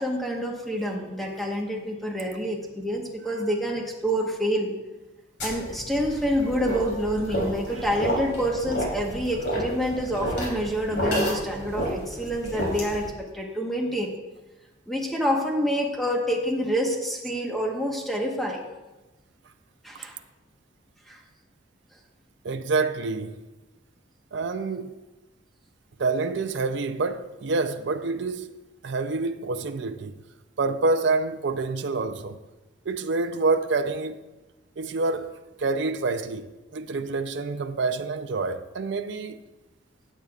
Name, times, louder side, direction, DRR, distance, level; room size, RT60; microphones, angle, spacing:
voice 1, 0.0-4.7 5.4-14.1 14.9-18.6 19.8-20.2 21.1-21.2, equal, ahead, 1.2 m, -27 dB
voice 2, 3.2-3.5 6.3-6.4 6.7-6.8 7.7-7.9 22.4-23.4 24.3-24.9 26.0-28.5 28.8-30.1 30.6-32.4 32.9-34.2 34.8-35.3 35.6-39.4, right 3 dB, 60° right, 0.5 m, -27 dB
sound 1, 5.4-13.1, equal, 60° left, 3.2 m, -30 dB
15.5 x 8.2 x 2.4 m
head